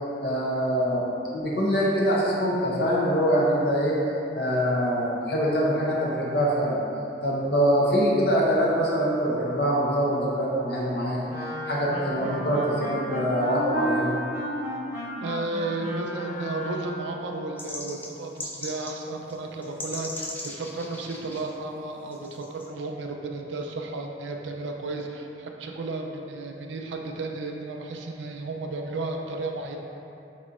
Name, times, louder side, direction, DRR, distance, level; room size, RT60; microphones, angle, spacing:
voice 1, 0.2-1.0 1.3-3.9 4.3-6.8 7.2-14.1, equal, 60° left, -5 dB, 0.7 m, -24 dB
Wind instrument woodwind instrument, 11.3-17.0, right 1 dB, 15° right, 0.7 m, -33 dB
voice 2, 15.2-29.8, right 2 dB, 90° right, 2 dB, 0.4 m, -33 dB
sound 1, 17.6-19.0 19.3-19.4 19.6-21.4 22.1-22.7, left 1 dB, 10° left, 0.3 m, -37 dB
4.1 x 3.8 x 2.4 m, 2.8 s
head